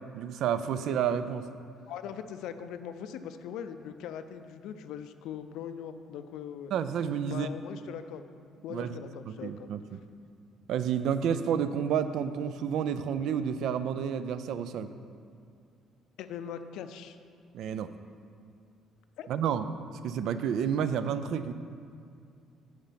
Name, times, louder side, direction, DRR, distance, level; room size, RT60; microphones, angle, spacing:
voice 1, 0.1-1.5 6.7-7.5 8.7-9.0 9.3-10.0 10.7-14.9 17.5-17.9 19.3-19.7 20.0-21.5, right 8 dB, 65° right, 12 dB, 0.4 m, -30 dB
voice 2, 1.9-6.7 7.3-8.2 8.6-9.7 16.2-17.2 19.2-19.3, left 8 dB, 80° left, 10 dB, 0.5 m, -40 dB
8.8 x 5.1 x 5.7 m, 2.3 s
cardioid pair, 155°, 0 cm